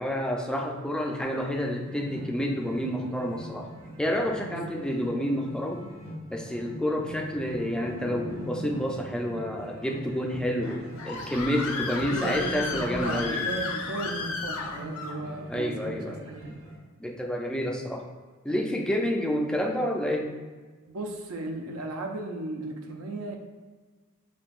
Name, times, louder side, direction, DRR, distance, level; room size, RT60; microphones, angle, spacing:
voice 1, 0.0-3.7 4.0-5.8 6.3-13.5 15.5-16.2 17.0-18.1 18.4-20.4, equal, 5° left, 1 dB, 0.3 m, -29 dB
sound 1, 1.8-16.8, equal, 65° right, 1.3 m, -43 dB
voice 2, 4.5-4.9 12.1-16.6 20.9-23.4, right 2 dB, 80° right, 2 dB, 0.6 m, -35 dB
Screaming, 10.6-15.2, left 4 dB, 75° left, 0.7 m, -33 dB
7.2 x 2.6 x 2.4 m, 1.4 s
head